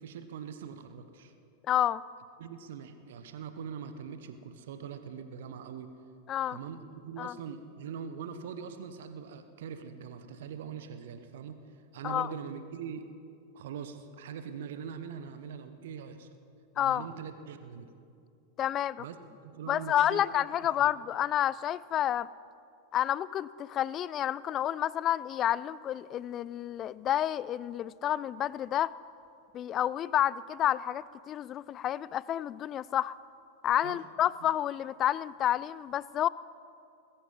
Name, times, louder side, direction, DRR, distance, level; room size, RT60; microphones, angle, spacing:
voice 1, 0.0-1.3 2.4-5.9 6.5-11.6 11.9-13.1 13.5-16.3 16.7-17.9 19.0-19.2 19.4-20.2 20.8-20.9 33.8-34.0 34.4-34.5, right 7 dB, 55° right, 9 dB, 0.9 m, -42 dB
voice 2, 1.7-2.0 6.3-6.6 7.2-7.3 12.0-12.3 16.8-17.0 18.6-19.0 19.7-22.3 22.9-28.9 29.5-33.1 33.6-36.3, left 11 dB, 30° left, 20 dB, 0.3 m, -29 dB
21.0 x 10.0 x 5.6 m, 2.5 s
figure-of-eight pair, 90°, 0 cm